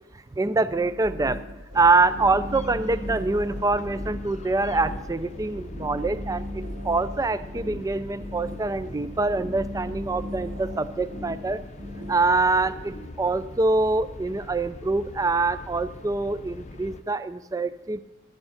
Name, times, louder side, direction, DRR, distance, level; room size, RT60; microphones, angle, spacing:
voice 1, 0.4-1.4 1.7-11.6 12.1-18.0, right 3 dB, 15° right, 14 dB, 0.4 m, -25 dB
sound 1, 0.7-13.0, left 1 dB, 60° right, 2.2 m, -37 dB
sound 2, 1.7-17.0, left 2 dB, 35° left, 0.6 m, -42 dB
10.5 x 8.6 x 5.7 m, 1.0 s
head